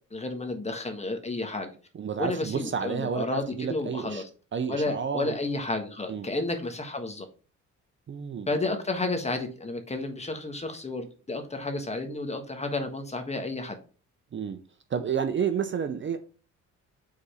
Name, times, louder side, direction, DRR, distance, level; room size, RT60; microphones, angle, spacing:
voice 1, 0.1-1.7 2.2-4.2 4.7-7.3 8.5-13.8, left 2 dB, 20° left, 1.5 m, -31 dB
voice 2, 1.9-4.2 4.5-5.4 6.1-6.3 8.1-8.5 14.3-14.6 14.9-16.2, right 7 dB, 40° right, 0.7 m, -30 dB
5.2 x 4.1 x 5.0 m
cardioid pair, 90°, 30 cm